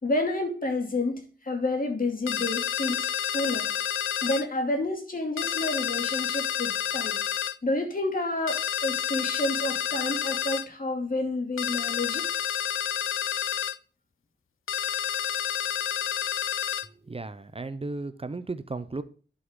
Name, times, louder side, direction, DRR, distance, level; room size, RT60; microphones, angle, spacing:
voice 1, 0.0-3.7 4.2-7.2 7.6-12.4, left 2 dB, 45° left, 2.6 m, -29 dB
sound 1, 2.3-4.5 5.4-7.6 8.5-10.7 11.6-13.8 14.7-16.9, left 9 dB, 85° left, 0.5 m, -29 dB
voice 2, 17.1-19.0, right 3 dB, 30° right, 0.6 m, -35 dB
11.0 x 6.2 x 3.7 m
wide cardioid pair, 110°, 21 cm